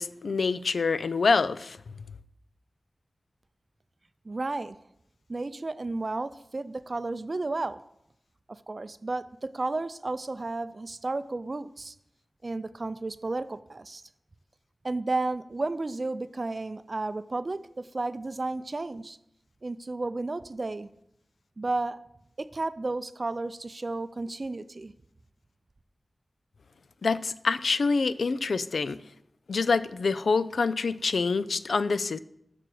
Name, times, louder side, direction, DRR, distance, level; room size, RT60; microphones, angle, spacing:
voice 1, 0.0-1.8 27.0-29.0 29.5-32.2, left 4 dB, 85° left, 0.4 m, -26 dB
voice 2, 4.2-4.8 5.3-7.8 8.5-11.9 12.4-14.0 14.8-19.2 19.6-20.9 21.6-22.0 22.4-24.9, right 2 dB, 45° right, 0.4 m, -32 dB
6.9 x 6.1 x 7.5 m
wide cardioid pair, 80°, 0 cm